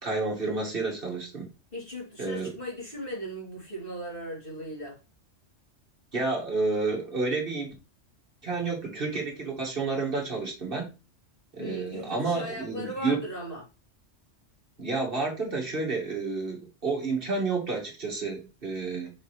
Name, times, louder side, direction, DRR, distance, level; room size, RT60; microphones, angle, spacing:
voice 1, 0.0-1.5 2.2-2.5 6.1-7.7 8.4-10.9 11.5-13.2 14.8-19.1, right 3 dB, 45° right, 2.5 m, -30 dB
voice 2, 1.7-5.0 11.6-13.7, equal, 45° left, 3.4 m, -38 dB
6.1 x 5.4 x 3.3 m
omnidirectional pair, 1.3 m